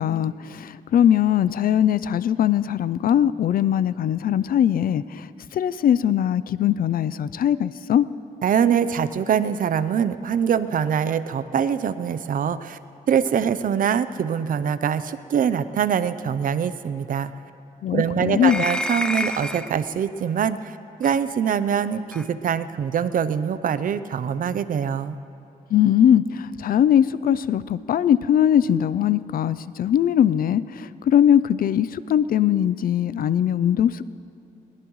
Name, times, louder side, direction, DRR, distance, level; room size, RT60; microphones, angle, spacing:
voice 1, 0.0-8.1 17.8-18.6 25.7-34.1, left 10 dB, 80° left, 17 dB, 0.4 m, -20 dB
voice 2, 8.4-12.8 13.1-17.3 17.9-25.2, right 8 dB, 70° right, 13 dB, 0.6 m, -24 dB
sound 1, 18.4-19.7 21.0-21.2 22.1-22.3, left 1 dB, 5° left, 0.6 m, -28 dB
21.5 x 20.0 x 3.1 m, 2.8 s
wide cardioid pair, 120°, 15 cm